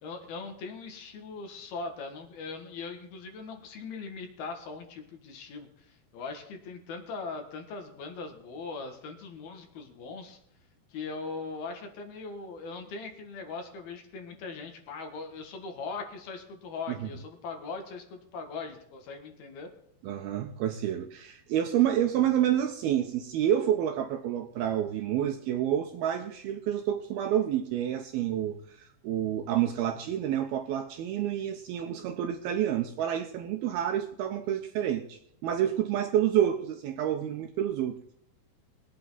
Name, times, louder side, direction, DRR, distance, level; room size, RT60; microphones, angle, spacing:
voice 1, 0.0-10.4 10.9-19.7, left 4 dB, 65° left, 4 dB, 3.3 m, -40 dB
voice 2, 20.0-38.0, right 10 dB, 75° right, 5 dB, 2.4 m, -29 dB
21.5 x 8.6 x 4.0 m, 0.71 s
omnidirectional pair, 5.2 m